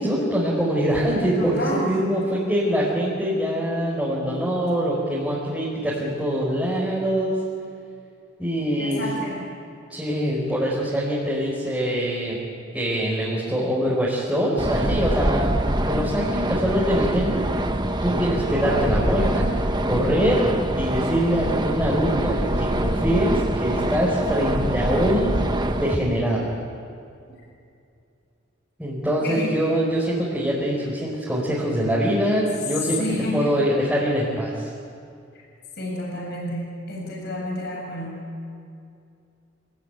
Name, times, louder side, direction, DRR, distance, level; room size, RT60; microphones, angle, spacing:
voice 1, 0.0-7.4 8.4-9.0 9.9-12.4 12.7-15.6 15.9-17.5 18.0-19.6 19.8-20.4 20.7-25.3 25.7-26.5 28.8-33.0 33.3-34.7, equal, 5° right, -7 dB, 4.7 m, -23 dB
voice 2, 1.4-1.9 8.8-9.4 29.2-29.6 33.0-33.5 35.8-38.2, left 1 dB, 55° left, -2 dB, 7.2 m, -30 dB
sound 1, 14.6-25.9, right 1 dB, 20° right, 1.1 m, -24 dB
27.0 x 20.5 x 9.2 m, 2.4 s
head